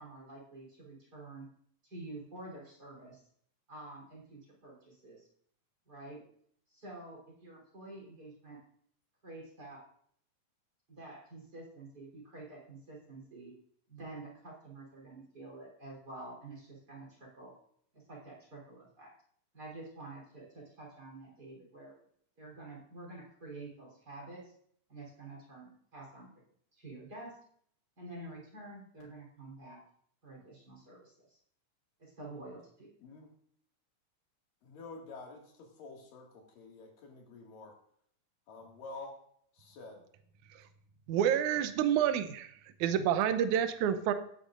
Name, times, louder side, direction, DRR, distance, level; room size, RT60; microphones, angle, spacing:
voice 1, 0.0-1.5 1.8-3.2 3.7-5.3 5.9-6.2 6.7-8.6 9.2-9.9 10.9-13.5 13.9-17.5 17.9-19.1 19.5-21.9 22.4-24.5 24.9-26.3 26.7-27.4 28.0-29.8 30.2-31.4 32.0-32.9, right 2 dB, 30° right, -2 dB, 3.9 m, -48 dB
voice 2, 34.6-37.7 38.5-39.2 39.6-40.0, left 3 dB, 80° left, 0 dB, 3.7 m, -48 dB
voice 3, 41.1-42.5 42.8-44.1, right 9 dB, 75° right, 10 dB, 2.0 m, -28 dB
18.0 x 8.9 x 2.5 m, 0.64 s
omnidirectional pair, 3.8 m